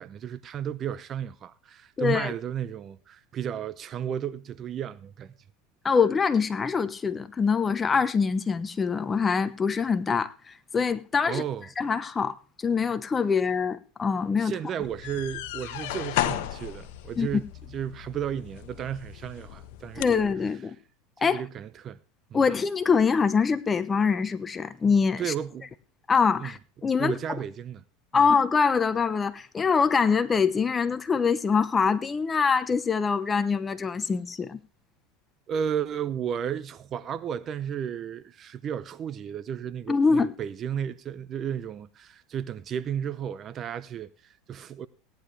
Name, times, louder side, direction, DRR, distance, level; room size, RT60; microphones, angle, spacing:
voice 1, 0.0-5.4 11.2-11.7 14.4-20.2 21.2-22.0 22.3-22.4 25.2-25.7 26.4-26.5 27.0-27.8 28.1-28.3 35.5-44.9, right 9 dB, 35° right, 0.7 m, -33 dB
voice 2, 2.0-2.3 5.8-10.3 10.7-11.4 11.8-12.3 12.6-14.5 17.2-17.4 20.0-20.7 21.2-21.4 22.3-25.2 26.1-27.1 28.1-34.6 39.9-40.3, left 5 dB, 20° left, 1.0 m, -24 dB
sound 1, 14.8-20.3, left 13 dB, 70° left, 1.1 m, -35 dB
17.5 x 10.5 x 3.3 m
supercardioid pair, 110°, 0 cm